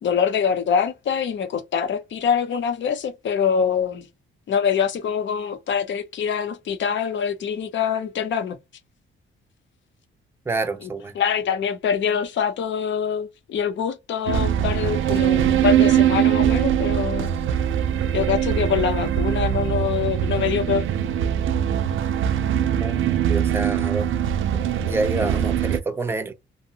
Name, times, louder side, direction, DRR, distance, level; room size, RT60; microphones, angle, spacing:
voice 1, 0.0-4.1 4.5-8.6 10.8-10.9 11.1-17.3 18.1-20.8, left 7 dB, 60° left, 0.7 m, -24 dB
voice 2, 10.5-11.1 22.8-23.0 23.3-24.1 24.5-24.6 24.9-26.3, right 3 dB, 10° right, 0.6 m, -27 dB
sound 1, 14.3-25.8, right 10 dB, 70° right, 0.5 m, -22 dB
2.7 x 2.1 x 2.7 m
cardioid pair, 125°, 21 cm